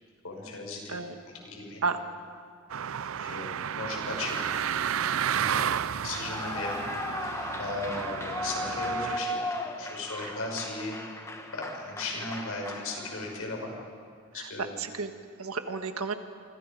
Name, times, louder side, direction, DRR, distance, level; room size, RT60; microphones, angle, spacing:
voice 1, 0.2-1.0 1.4-1.8 3.2-4.5 5.3-5.8 6.0-6.8 7.6-9.4 9.8-13.7 14.3-14.7, left 2 dB, 85° left, 1 dB, 5.7 m, -36 dB
sound 1, 2.7-9.2, right 8 dB, 70° right, 0.5 m, -32 dB
Clapping / Cheering / Applause, 6.0-13.4, left 1 dB, 15° left, 1.4 m, -36 dB
voice 2, 14.8-15.1 15.4-16.1, right 4 dB, 85° right, 7 dB, 1.6 m, -32 dB
27.0 x 25.0 x 5.2 m, 2.2 s
head